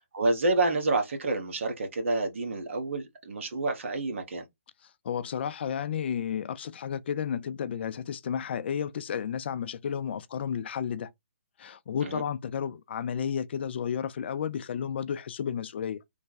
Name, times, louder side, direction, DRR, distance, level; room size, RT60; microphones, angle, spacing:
voice 1, 0.1-4.4 12.0-12.2, right 2 dB, 60° right, 1.2 m, -28 dB
voice 2, 5.0-11.1 11.6-16.0, left 8 dB, 50° left, 0.4 m, -32 dB
3.3 x 2.2 x 4.0 m
hypercardioid pair, 150°, 7 cm